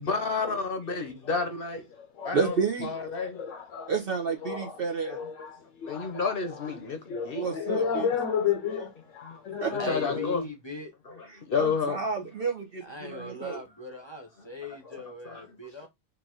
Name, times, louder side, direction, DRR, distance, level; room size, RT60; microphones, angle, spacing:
voice 1, 0.0-1.9 2.2-3.4 5.8-7.5 9.2-9.4 9.7-10.5 11.1-12.3 13.2-13.3 15.2-15.6, left 4 dB, 50° left, 0.9 m, -31 dB
voice 2, 2.3-2.9 3.9-5.2 7.4-8.1 9.6-9.7 11.3-13.6, right 5 dB, 55° right, 0.9 m, -30 dB
voice 3, 3.2-3.9 4.4-4.8 5.1-6.3 7.1-10.3, left 7 dB, 80° left, 1.1 m, -32 dB
voice 4, 9.8-10.9 12.8-15.9, left 2 dB, 25° left, 0.7 m, -40 dB
4.6 x 2.6 x 3.7 m
omnidirectional pair, 1.3 m